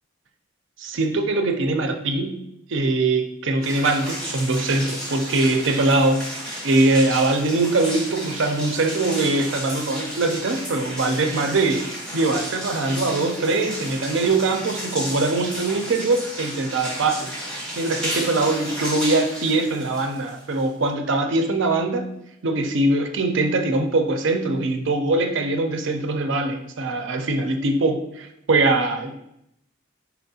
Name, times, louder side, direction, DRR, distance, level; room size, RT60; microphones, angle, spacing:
voice 1, 0.8-2.4 2.7-11.9 12.1-22.1 22.4-29.1, right 2 dB, 65° right, 5 dB, 0.5 m, -22 dB
sound 1, 3.6-20.9, equal, 5° left, 1.0 m, -33 dB
4.4 x 4.2 x 2.7 m, 0.80 s
head